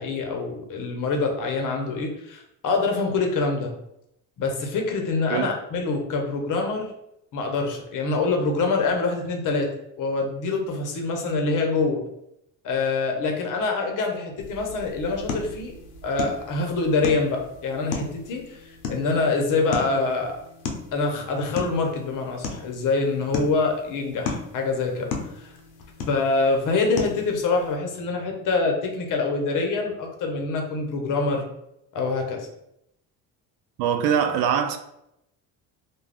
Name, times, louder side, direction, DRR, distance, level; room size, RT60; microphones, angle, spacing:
voice 1, 0.0-3.7 4.4-6.9 7.3-9.7 10.0-12.0 12.6-15.7 16.0-20.4 20.9-25.5 26.1-31.4 31.9-32.5, left 3 dB, 55° left, 0.8 m, -25 dB
sound 1, 14.4-27.8, left 5 dB, 85° left, 0.7 m, -36 dB
voice 2, 33.8-34.8, right 8 dB, 70° right, 0.5 m, -22 dB
2.4 x 2.2 x 3.4 m
supercardioid pair, 100°, 39 cm